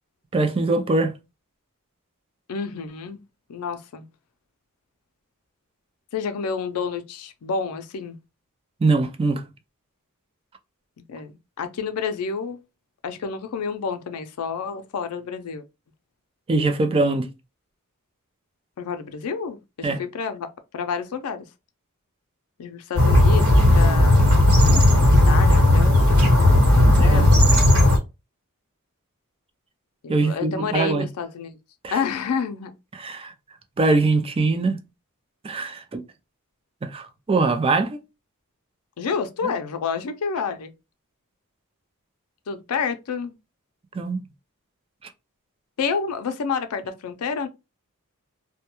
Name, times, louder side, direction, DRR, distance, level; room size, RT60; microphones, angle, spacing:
voice 1, 0.3-1.1 8.8-9.4 16.5-17.3 19.8-20.0 27.0-27.4 30.1-31.1 31.8-32.0 32.9-33.3 33.8-34.8 35.4-36.0 36.8-38.0 39.4-39.5 43.9-44.2 45.0-45.1, right 3 dB, 25° right, 0.3 m, -22 dB
voice 2, 2.5-3.2 3.5-4.0 6.1-8.2 11.1-12.6 13.0-15.6 18.8-20.5 20.7-21.4 22.6-24.3 25.1-26.3 26.8-27.4 30.0-31.6 31.9-32.7 39.0-40.7 42.5-43.3 45.8-47.5, left 5 dB, 90° left, 0.4 m, -29 dB
sound 1, 23.0-28.0, left 1 dB, 70° right, 1.3 m, -15 dB
2.2 x 2.1 x 2.8 m
head